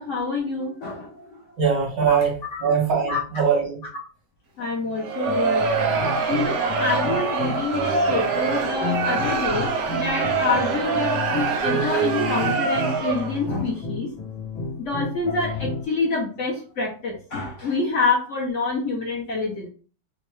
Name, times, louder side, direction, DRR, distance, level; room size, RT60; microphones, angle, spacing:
voice 1, 0.0-1.4 2.1-2.2 3.1-3.2 4.6-5.6 6.3-14.1 14.8-19.7, left 3 dB, 60° left, 0 dB, 0.8 m, -27 dB
voice 2, 1.6-3.9, right 6 dB, 90° right, -2 dB, 2.2 m, -22 dB
Crowd, 5.0-13.5, right 5 dB, 65° right, 1.0 m, -24 dB
sound 1, 5.3-15.9, left 3 dB, 85° left, 1.5 m, -32 dB
4.4 x 2.0 x 3.1 m, 0.38 s
omnidirectional pair, 1.9 m